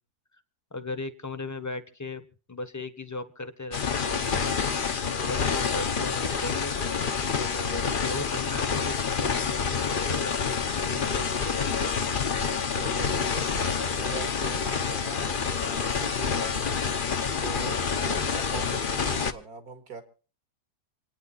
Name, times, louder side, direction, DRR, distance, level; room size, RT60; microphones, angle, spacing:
voice 1, 0.7-4.6 5.3-6.7 7.4-12.0, left 3 dB, 15° left, 9 dB, 1.0 m, -37 dB
sound 1, 3.7-19.3, left 6 dB, 40° left, 0.9 m, -28 dB
voice 2, 12.7-17.1 17.4-20.0, right 5 dB, 70° right, 7 dB, 2.6 m, -42 dB
27.5 x 9.6 x 4.1 m, 0.40 s
omnidirectional pair, 1.7 m